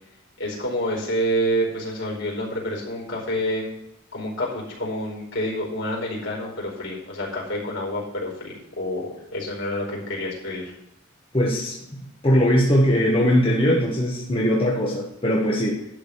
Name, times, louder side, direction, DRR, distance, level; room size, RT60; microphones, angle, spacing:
voice 1, 0.4-3.7 4.1-10.7, equal, 60° left, -2 dB, 4.6 m, -28 dB
voice 2, 11.3-11.7 12.2-15.8, equal, 25° left, -4 dB, 1.6 m, -20 dB
12.0 x 5.3 x 6.7 m, 0.83 s
head